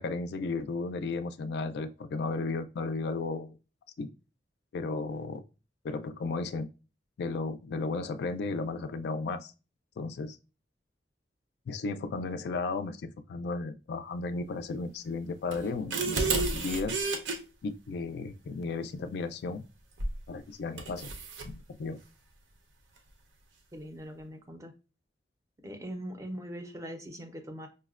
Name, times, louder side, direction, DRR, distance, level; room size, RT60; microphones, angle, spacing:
voice 1, 0.0-3.5 4.0-4.1 4.7-5.4 5.8-6.7 7.2-9.5 10.0-10.4 11.7-17.0 17.6-19.6 20.3-21.1 21.4-22.0, left 3 dB, 60° left, 10 dB, 0.3 m, -34 dB
sound 1, 15.5-17.4 20.0-20.2 20.8-21.5, right 3 dB, 80° right, 0.6 m, -31 dB
voice 2, 23.7-24.7 25.6-27.7, equal, 15° right, 6 dB, 0.4 m, -41 dB
5.3 x 2.1 x 2.3 m, 0.32 s
head